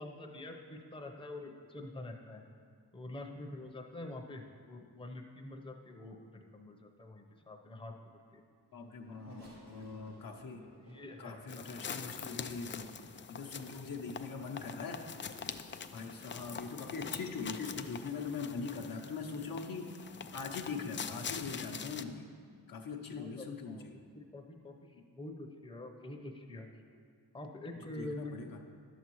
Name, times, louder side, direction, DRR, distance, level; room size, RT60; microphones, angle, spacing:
voice 1, 0.0-2.4 2.9-7.9 8.3-8.4 9.3-9.5 10.5-11.6 23.2-23.9 24.1-26.7 27.3-28.6, left 1 dB, 15° left, 2 dB, 0.8 m, -46 dB
Race car auto racing / Accelerating revving vroom, 8.3-12.8 13.5-13.6 14.7-14.9, equal, 75° right, 1.7 m, -58 dB
voice 2, 8.7-10.7 11.2-12.9 13.3-15.0 15.9-19.9 20.3-22.3 22.7-24.0 27.9-28.6, left 4 dB, 55° left, 2 dB, 0.8 m, -42 dB
sound 1, 11.5-22.0, left 6 dB, 30° left, 0.4 m, -44 dB
11.0 x 7.2 x 3.1 m, 2.1 s
cardioid pair, 55°, 40 cm